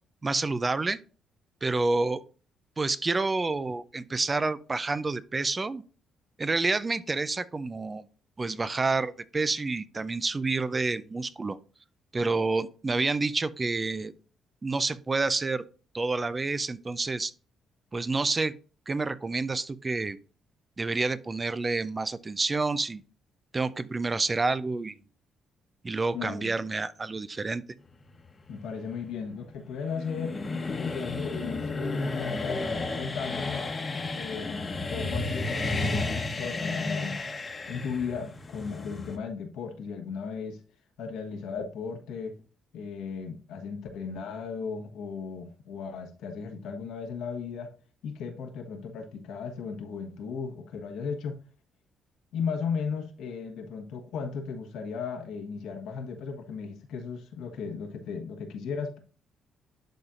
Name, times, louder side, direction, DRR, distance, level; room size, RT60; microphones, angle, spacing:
voice 1, 0.2-1.0 1.6-2.2 2.8-5.8 6.4-8.1 8.4-11.6 12.1-14.1 14.6-15.6 15.9-17.3 17.9-18.5 18.9-20.2 20.8-23.0 23.5-25.0 25.8-27.6, right 3 dB, 25° right, 0.5 m, -28 dB
voice 2, 26.1-26.5 28.5-30.3 30.7-33.7 34.1-34.5 34.9-37.2 37.7-40.6 41.0-42.4 42.7-47.7 48.0-51.4 52.3-59.0, left 5 dB, 85° left, 1.2 m, -36 dB
sound 1, 28.0-39.2, left 3 dB, 30° left, 1.1 m, -32 dB
11.5 x 4.2 x 2.5 m
cardioid pair, 90°, 0 cm